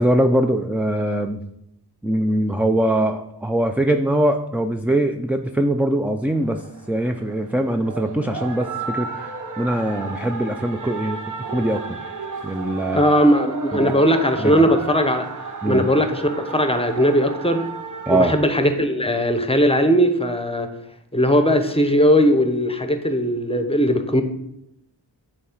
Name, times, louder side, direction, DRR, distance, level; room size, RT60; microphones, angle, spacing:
voice 1, 0.0-1.4 2.0-11.2 11.5-11.9 12.4-13.0 13.7-13.9 14.4-14.6 15.6-15.9 18.1-18.3, right 1 dB, 5° right, 5 dB, 0.3 m, -22 dB
sound 1, 6.3-18.4, right 4 dB, 45° right, 0.8 m, -33 dB
voice 2, 12.9-15.3 15.6-17.7 18.1-20.7 21.1-24.2, equal, 15° left, 8 dB, 0.8 m, -18 dB
7.7 x 3.2 x 4.5 m, 0.79 s
cardioid pair, 45°, 43 cm